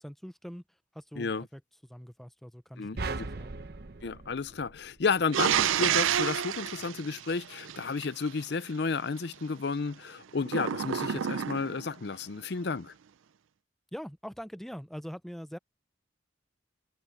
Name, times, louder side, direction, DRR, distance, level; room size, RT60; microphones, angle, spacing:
voice 1, 0.0-3.6 13.9-15.6, equal, ahead, 0.5 m, -43 dB
sound 1, 3.0-5.4, right 3 dB, 55° right, 0.8 m, -38 dB
voice 2, 4.0-12.9, left 4 dB, 55° left, 0.6 m, -32 dB
sound 2, 5.3-8.1 10.5-11.9, right 9 dB, 85° right, 0.4 m, -29 dB
head